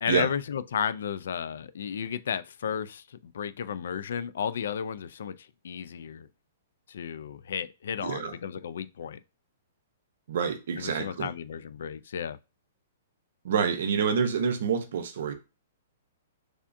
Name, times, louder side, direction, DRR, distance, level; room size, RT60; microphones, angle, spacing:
voice 1, 0.0-6.3 6.9-9.2 10.8-12.4, left 8 dB, 65° left, 0.3 m, -33 dB
voice 2, 8.0-8.3 10.3-11.3 13.4-15.3, right 6 dB, 55° right, 0.7 m, -27 dB
3.5 x 3.4 x 2.6 m
hypercardioid pair, 175°, 0 cm